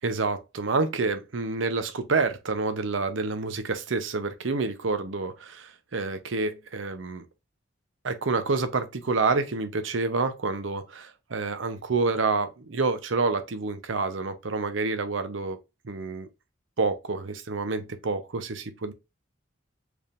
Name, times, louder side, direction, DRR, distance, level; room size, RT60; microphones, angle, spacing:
voice 1, 0.0-7.3 8.0-15.6 15.8-16.3 16.8-18.9, right 3 dB, 85° right, 0.7 m, -28 dB
4.6 x 3.5 x 2.5 m
head